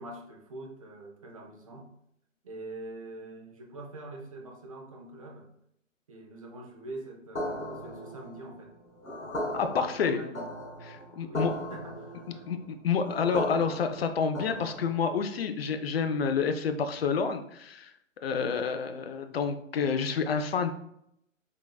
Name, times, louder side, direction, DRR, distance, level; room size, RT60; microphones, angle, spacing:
voice 1, 0.0-1.9 2.4-5.5 6.1-8.8 9.4-10.6 10.8-12.4, right 2 dB, 30° right, 1 dB, 0.4 m, -44 dB
sound 1, 7.4-15.2, left 1 dB, 85° left, 1.4 m, -37 dB
voice 2, 9.5-10.3 10.9-11.5 12.5-17.9 18.2-20.7, left 6 dB, 50° left, 8 dB, 0.4 m, -29 dB
3.8 x 3.5 x 2.2 m, 0.73 s
figure-of-eight pair, 135°, 39 cm